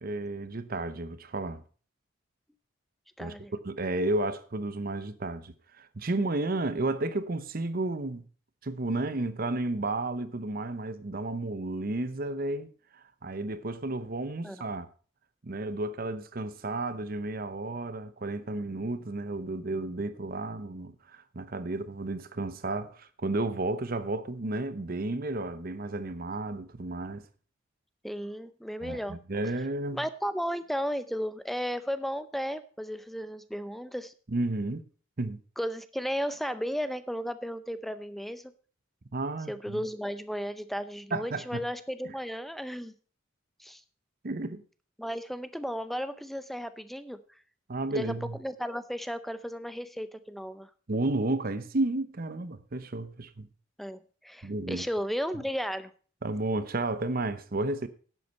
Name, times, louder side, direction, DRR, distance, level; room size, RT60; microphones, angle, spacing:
voice 1, 0.0-1.6 3.2-3.3 3.6-8.2 8.6-14.9 15.4-27.2 28.8-30.0 34.3-34.9 35.2-35.4 39.1-39.8 41.1-41.6 42.0-42.1 44.2-44.6 47.7-48.4 50.9-53.5 54.4-54.8 56.2-57.9, right 2 dB, 50° right, 0.8 m, -32 dB
voice 2, 3.2-3.5 14.4-14.6 28.0-29.2 29.9-34.1 35.6-38.5 39.5-42.9 43.6-43.8 45.0-47.2 47.9-48.1 48.4-50.7 53.8-55.9, equal, ahead, 0.6 m, -34 dB
10.5 x 8.2 x 5.4 m
head